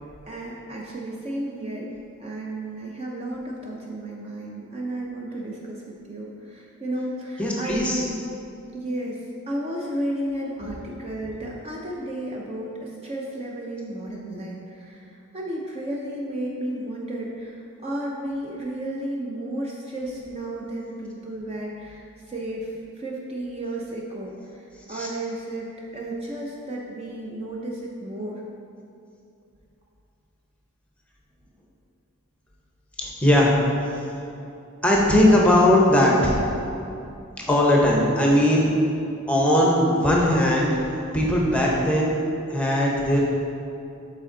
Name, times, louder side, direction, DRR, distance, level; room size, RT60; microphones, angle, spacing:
voice 1, 0.3-1.9 2.2-8.1 8.7-9.2 9.5-25.7 25.9-28.4, right 1 dB, 30° right, -3 dB, 0.5 m, -33 dB
voice 2, 7.4-8.0 24.9-25.1 33.0-34.0 34.8-36.5 37.4-38.7 39.3-42.2 42.5-43.2, left 1 dB, 5° left, -3 dB, 0.8 m, -19 dB
7.9 x 4.2 x 3.8 m, 2.7 s
head